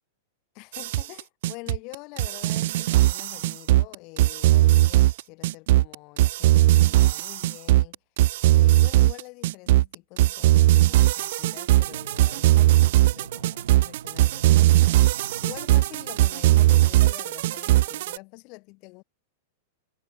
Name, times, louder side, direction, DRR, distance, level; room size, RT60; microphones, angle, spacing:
voice 1, 0.5-8.0 8.4-19.0, left 29 dB, 45° left, 4.9 m, -45 dB
sound 1, 0.7-18.2, right 16 dB, 60° right, 0.3 m, -19 dB
sound 2, 11.8-17.2, right 7 dB, 80° right, 5.0 m, -44 dB
figure-of-eight pair, 100°, 0 cm